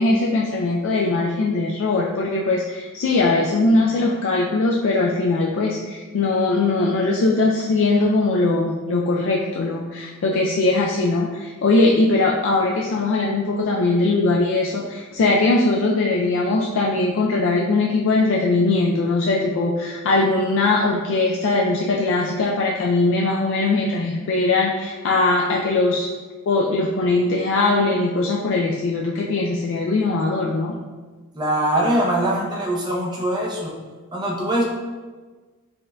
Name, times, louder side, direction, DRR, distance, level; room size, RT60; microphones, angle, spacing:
voice 1, 0.0-26.1 26.5-30.7, left 2 dB, 60° left, -2 dB, 0.3 m, -20 dB
voice 2, 31.3-33.7 34.1-34.6, right 1 dB, 20° right, -2 dB, 0.6 m, -22 dB
4.3 x 3.7 x 2.2 m, 1.3 s
head